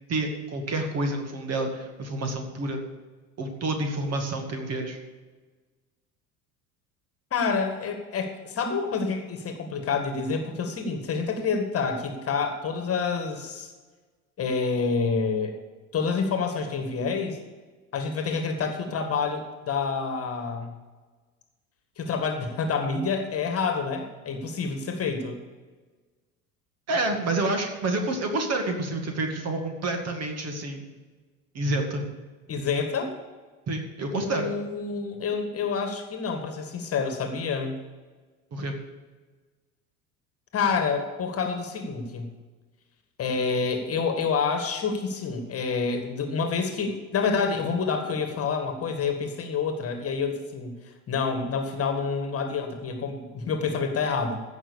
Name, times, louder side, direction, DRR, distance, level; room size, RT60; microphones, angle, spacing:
voice 1, 0.1-2.8 3.4-5.0 26.9-30.8 31.5-32.0 33.7-34.5 38.5-38.7, right 2 dB, 35° right, 5 dB, 2.2 m, -28 dB
voice 2, 7.3-13.7 14.4-15.5 15.9-17.4 17.9-20.7 22.0-25.4 32.5-33.1 34.1-37.7 40.5-42.3 43.2-50.8 51.1-54.4, left 5 dB, 30° left, 5 dB, 1.9 m, -28 dB
15.5 x 6.0 x 7.0 m, 1.3 s
figure-of-eight pair, 70°, 45 cm